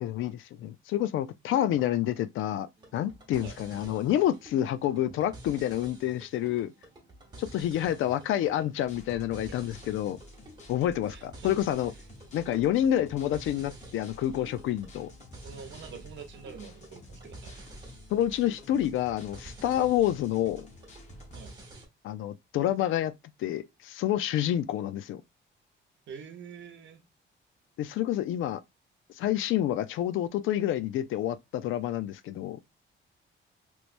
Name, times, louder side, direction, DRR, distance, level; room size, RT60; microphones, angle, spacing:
voice 1, 0.0-2.7 2.9-6.7 7.4-10.2 10.7-11.9 12.3-15.1 18.1-20.7 22.0-23.1 23.4-25.2 27.8-28.6 29.2-32.6, left 12 dB, 75° left, 0.4 m, -28 dB
sound 1, 2.8-21.8, right 2 dB, 20° right, 1.0 m, -50 dB
sound 2, 8.8-21.4, left 1 dB, 35° left, 0.7 m, -51 dB
voice 2, 11.1-11.6 15.4-17.6 21.3-21.5 26.1-27.1, right 6 dB, 65° right, 0.9 m, -46 dB
3.2 x 3.0 x 2.5 m
cardioid pair, 165°, 21 cm